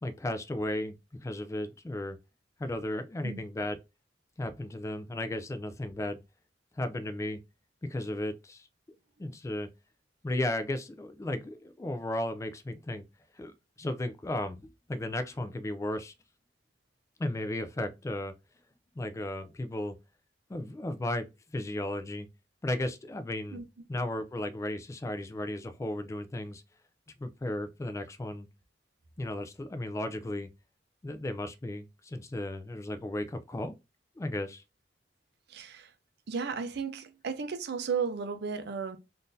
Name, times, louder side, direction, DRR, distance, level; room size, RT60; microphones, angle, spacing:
voice 1, 0.0-2.2 2.6-3.8 4.4-6.2 6.8-7.4 7.8-8.7 9.2-9.7 10.2-13.0 13.4-13.5 13.8-16.1 17.2-18.3 19.0-20.0 20.5-21.3 21.5-22.3 22.6-23.6 23.9-26.6 27.2-28.5 29.2-30.5 31.0-33.8 34.2-34.6, left 1 dB, 15° left, 0.3 m, -35 dB
voice 2, 35.5-35.9 36.3-39.0, right 6 dB, 65° right, 0.5 m, -34 dB
3.7 x 2.6 x 2.5 m
head